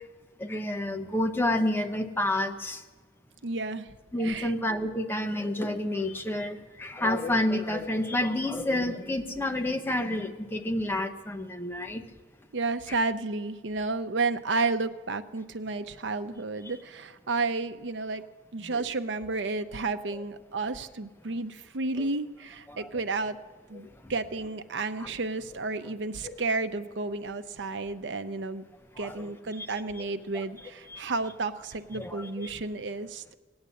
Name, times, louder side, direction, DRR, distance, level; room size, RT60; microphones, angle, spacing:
voice 1, 0.4-2.8 4.1-12.0 18.6-18.8 22.7-22.9 24.0-24.1 25.0-25.1 25.8-25.9 26.2-26.4 29.0-29.8 30.3-30.4 30.9-31.0 31.9-32.5, left 1 dB, 10° left, 5 dB, 0.9 m, -29 dB
voice 2, 3.4-3.9 4.2-4.5 12.5-18.2 18.5-23.4 23.7-28.6 29.0-33.4, right 3 dB, 85° right, 10 dB, 0.7 m, -32 dB
17.0 x 9.6 x 8.3 m, 1.4 s
head